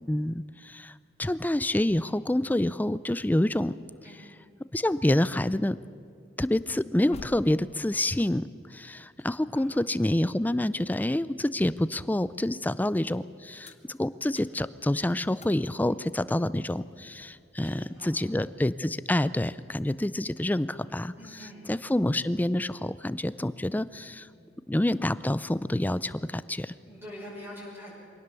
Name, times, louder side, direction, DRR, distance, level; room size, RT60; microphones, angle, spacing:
voice 1, 0.0-3.7 4.7-5.8 6.4-21.1 21.7-24.3 24.7-26.7, left 1 dB, 10° left, 16 dB, 0.4 m, -27 dB
sound 1, 7.1-11.7 12.1-17.5, left 2 dB, 35° left, 1.1 m, -53 dB
voice 2, 17.6-18.2 19.9-20.0 21.2-21.9 24.0-24.2 26.9-27.9, equal, 15° right, -7 dB, 6.0 m, -45 dB
23.5 x 17.5 x 7.0 m, 2.2 s
head